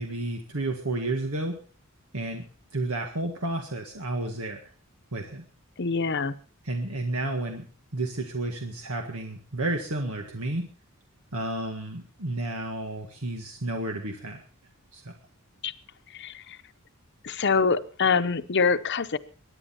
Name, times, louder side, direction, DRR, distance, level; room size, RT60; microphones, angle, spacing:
voice 1, 0.0-1.5 2.1-2.4 2.7-4.7 5.1-5.4 6.7-7.7 7.9-10.6 11.3-14.4 14.9-15.1, right 2 dB, 80° right, 3 dB, 1.8 m, -31 dB
voice 2, 5.8-6.3 15.6-15.7 16.1-16.6 17.2-19.2, left 5 dB, 50° left, 11 dB, 0.8 m, -25 dB
22.5 x 10.0 x 4.4 m, 0.40 s
head